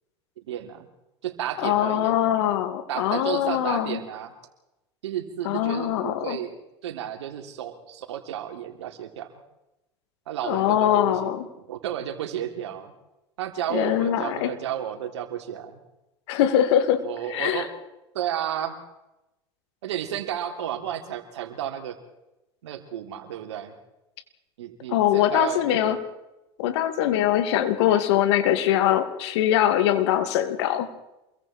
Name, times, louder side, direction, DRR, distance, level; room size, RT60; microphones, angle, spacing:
voice 1, 0.4-0.9 1.2-2.2 2.9-4.3 5.0-9.3 10.3-11.3 11.7-12.9 13.4-15.8 17.0-17.7 18.1-18.8 19.8-22.0 22.6-23.7 24.6-26.0, right 10 dB, 85° right, 6 dB, 3.3 m, -32 dB
voice 2, 1.6-4.0 5.4-6.4 10.4-11.5 13.7-14.5 16.3-17.6 24.9-26.0 26.6-30.9, left 11 dB, 75° left, 9 dB, 2.6 m, -22 dB
28.0 x 22.5 x 4.5 m, 0.94 s
hypercardioid pair, 85°, 14 cm